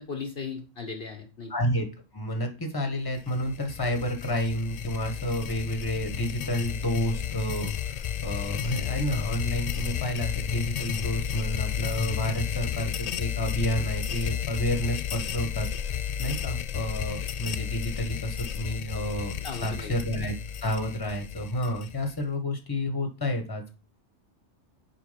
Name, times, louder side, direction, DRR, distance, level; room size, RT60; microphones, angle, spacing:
voice 1, 0.0-1.5 19.4-19.9, left 5 dB, 55° left, 4 dB, 1.2 m, -37 dB
voice 2, 1.5-1.9 2.1-15.9 16.2-20.3 20.6-23.8, equal, 20° left, 5 dB, 1.4 m, -30 dB
sound 1, 3.2-22.2, left 9 dB, 70° left, 0.3 m, -32 dB
7.4 x 5.0 x 5.2 m, 0.33 s
omnidirectional pair, 1.2 m